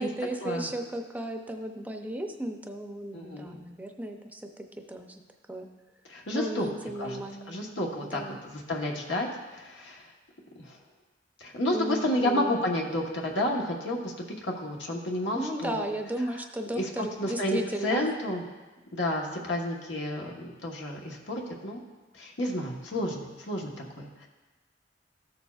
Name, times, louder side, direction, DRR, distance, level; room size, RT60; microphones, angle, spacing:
voice 1, 0.0-5.2 5.5-5.7 6.3-7.7 8.0-8.4 11.7-12.5 15.3-18.1, right 1 dB, 10° right, 4 dB, 0.6 m, -35 dB
voice 2, 3.1-3.6 6.1-6.7 7.0-7.2 7.5-9.3 9.5-10.0 10.6-10.8 11.4-14.1 14.4-15.8 16.7-18.4 18.9-21.8 22.2-24.3, left 1 dB, 90° left, -1 dB, 1.2 m, -31 dB
14.0 x 6.9 x 2.4 m, 1.2 s
head